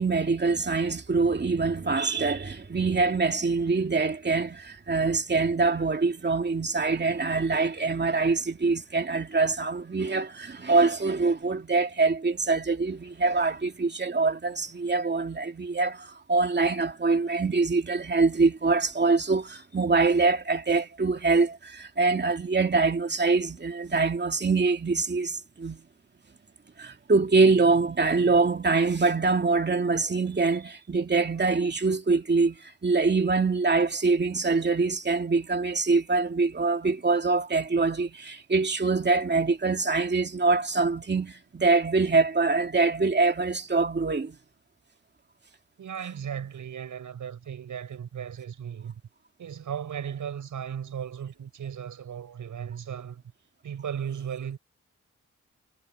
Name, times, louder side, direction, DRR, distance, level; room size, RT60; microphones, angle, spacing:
voice 1, 0.0-25.8 26.8-44.4, right 3 dB, 35° right, 2.6 m, -24 dB
voice 2, 45.8-49.0 49.4-53.2 53.6-54.6, right 8 dB, 85° right, 7.3 m, -36 dB
cardioid pair, 75°, 30 cm